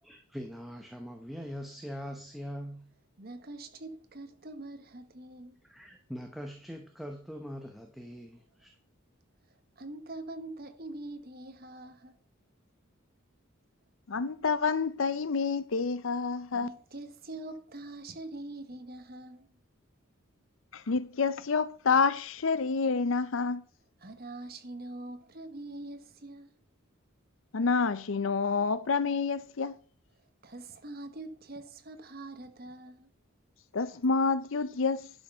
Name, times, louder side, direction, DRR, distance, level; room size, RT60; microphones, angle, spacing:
voice 1, 0.0-2.9 5.6-8.8, equal, ahead, 0.9 m, -42 dB
voice 2, 3.2-5.6 9.8-12.2 16.5-19.5 24.0-26.5 30.4-33.1, right 2 dB, 45° right, 1.2 m, -44 dB
voice 3, 14.1-16.7 20.7-23.6 27.5-29.8 33.7-35.1, left 4 dB, 70° left, 0.6 m, -28 dB
11.0 x 5.4 x 5.6 m
head